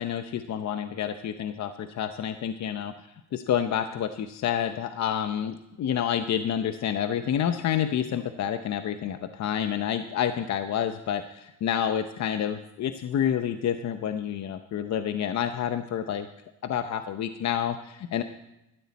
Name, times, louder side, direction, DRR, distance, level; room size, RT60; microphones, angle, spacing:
voice 1, 0.0-2.9 3.3-16.3 16.6-18.2, left 9 dB, 65° left, 9 dB, 0.8 m, -29 dB
17.0 x 12.5 x 4.2 m, 0.90 s
cardioid pair, 90°, 30 cm